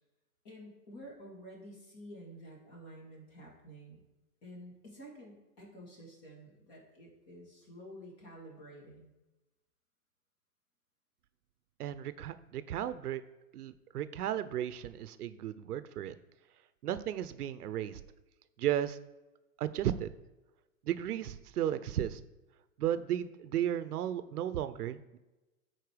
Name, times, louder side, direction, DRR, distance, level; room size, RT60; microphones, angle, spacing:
voice 1, 0.4-4.0 4.4-9.1, equal, 30° left, -2 dB, 2.8 m, -50 dB
voice 2, 11.8-13.2 13.5-16.1 16.8-18.0 18.6-19.0 19.6-20.1 20.9-22.2 22.8-25.2, right 11 dB, 80° right, 13 dB, 0.7 m, -34 dB
10.5 x 4.5 x 5.0 m, 1.1 s
hypercardioid pair, 150°, 45 cm